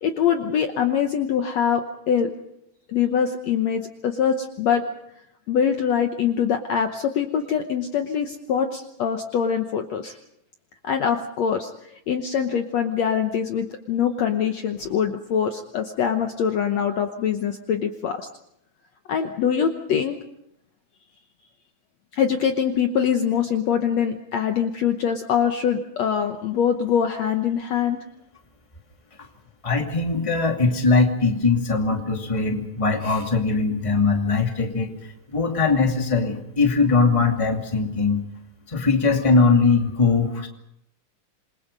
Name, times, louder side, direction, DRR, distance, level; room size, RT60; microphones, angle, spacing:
voice 1, 0.0-2.3 2.9-4.8 5.5-10.2 10.8-18.3 19.1-20.2 22.1-28.0, left 8 dB, 65° left, 6 dB, 1.9 m, -23 dB
voice 2, 29.6-34.9 35.3-38.2 38.7-40.5, left 4 dB, 10° left, 3 dB, 1.9 m, -21 dB
27.5 x 22.0 x 5.4 m, 0.79 s
omnidirectional pair, 3.9 m